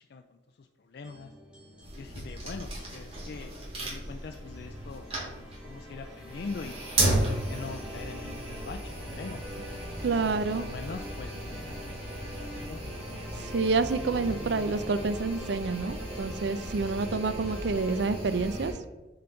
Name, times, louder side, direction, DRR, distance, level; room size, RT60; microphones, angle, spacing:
voice 1, 0.6-1.3 2.0-5.1 5.4-6.8 7.5-9.6 10.1-11.9 12.2-13.1, left 4 dB, 55° left, 5 dB, 0.3 m, -43 dB
sound 1, 1.0-18.7, equal, 5° right, 1.8 m, -44 dB
sound 2, 1.8-18.7, right 1 dB, 30° right, 1.8 m, -35 dB
voice 2, 10.0-10.7 13.4-18.7, right 4 dB, 60° right, 12 dB, 0.4 m, -28 dB
6.9 x 3.9 x 4.4 m, 1.2 s
head